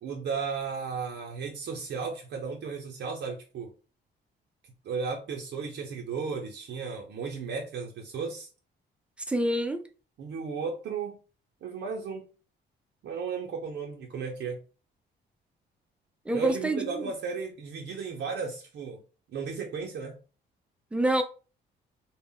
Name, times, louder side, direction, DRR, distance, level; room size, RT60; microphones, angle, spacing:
voice 1, 0.0-3.7 4.8-8.5 10.2-11.2 11.6-12.3 13.0-14.6 16.3-19.0 19.3-20.1, right 5 dB, 65° right, 0.6 m, -34 dB
voice 2, 9.3-9.8 16.3-17.1 20.9-21.2, right 1 dB, 5° right, 0.4 m, -27 dB
2.0 x 2.0 x 3.7 m
cardioid pair, 90°, 20 cm